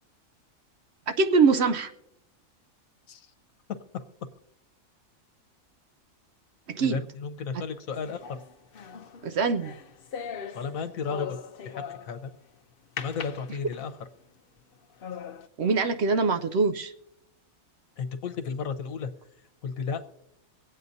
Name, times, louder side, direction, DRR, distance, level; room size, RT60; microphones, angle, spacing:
voice 1, 1.1-1.9 6.7-7.0 9.2-9.7 15.6-16.9, right 4 dB, 65° right, 8 dB, 0.7 m, -23 dB
voice 2, 6.8-8.2 10.5-11.4 11.6-12.3 13.0-13.9 18.0-19.1 19.6-20.0, left 5 dB, 80° left, 8 dB, 1.3 m, -33 dB
sound 1, 7.9-12.3 13.0-14.1 14.6-14.7 15.0-15.5, left 7 dB, 55° left, 0.7 m, -40 dB
24.0 x 8.6 x 2.7 m, 0.82 s
omnidirectional pair, 1.4 m